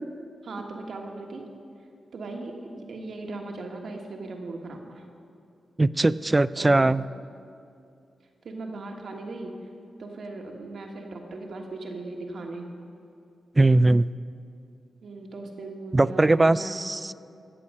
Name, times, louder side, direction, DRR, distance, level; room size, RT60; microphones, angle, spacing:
voice 1, 0.5-1.4 2.1-5.0 6.6-7.0 8.4-9.5 10.0-12.8 15.0-16.9, right 2 dB, 70° right, 2 dB, 1.4 m, -38 dB
voice 2, 5.8-7.0 13.6-14.1 15.9-17.1, right 2 dB, 30° right, 17 dB, 0.3 m, -20 dB
16.5 x 7.0 x 5.4 m, 2.5 s
supercardioid pair, 40°, 0 cm